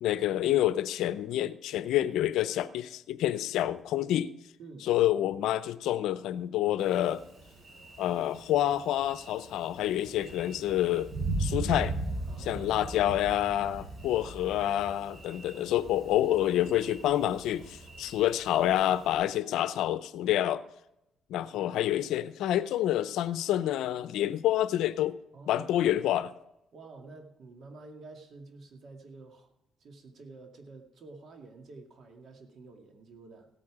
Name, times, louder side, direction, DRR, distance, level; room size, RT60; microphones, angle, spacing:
voice 1, 0.0-4.3 4.9-7.2 8.0-11.1 11.4-11.9 12.5-20.6 21.3-25.2 25.5-26.3, left 12 dB, 85° left, 0.6 m, -28 dB
Thunder, 6.8-19.2, right 2 dB, 45° right, 6.4 m, -39 dB
voice 2, 12.3-12.7 25.3-25.7 26.7-29.5 29.8-33.5, right 3 dB, 60° right, 2.2 m, -49 dB
16.5 x 8.6 x 4.9 m
cardioid pair, 90°, 0 cm